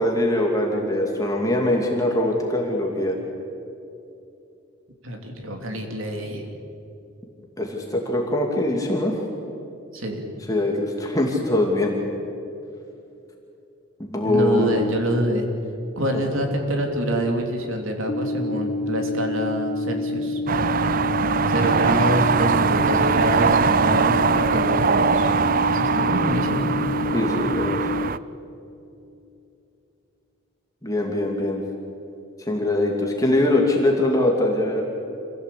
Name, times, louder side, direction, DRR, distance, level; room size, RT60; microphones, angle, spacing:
voice 1, 0.0-3.2 7.6-9.1 10.5-12.0 14.0-14.8 16.1-16.2 27.1-27.8 30.8-31.6 32.5-34.8, left 1 dB, 15° left, 0 dB, 2.5 m, -22 dB
voice 2, 5.0-6.5 9.9-10.2 14.2-15.5 16.0-20.4 21.5-25.3 25.7-26.7 27.3-27.5, right 1 dB, 85° right, 3 dB, 3.2 m, -26 dB
sound 1, 18.1-28.1, left 2 dB, 35° left, 0.5 m, -28 dB
sound 2, 20.5-28.2, right 5 dB, 45° right, 0.4 m, -21 dB
26.5 x 16.0 x 8.5 m, 2.8 s
head